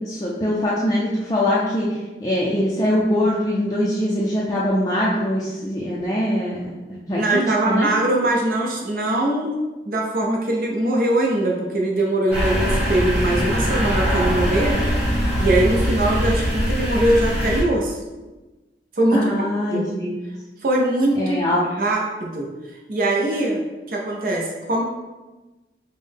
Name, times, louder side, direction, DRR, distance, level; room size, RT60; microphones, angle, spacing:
voice 1, 0.0-7.9 19.1-20.2 21.1-21.7, left 1 dB, 20° left, -6 dB, 0.4 m, -23 dB
voice 2, 7.1-14.8 15.4-18.0 19.0-19.3 19.7-19.8 20.6-21.4 21.8-22.5 22.9-23.6 23.9-24.8, right 1 dB, 50° right, -1 dB, 0.5 m, -21 dB
sound 1, 12.3-17.6, equal, 5° right, 1.2 m, -22 dB
5.4 x 2.1 x 3.4 m, 1.2 s
head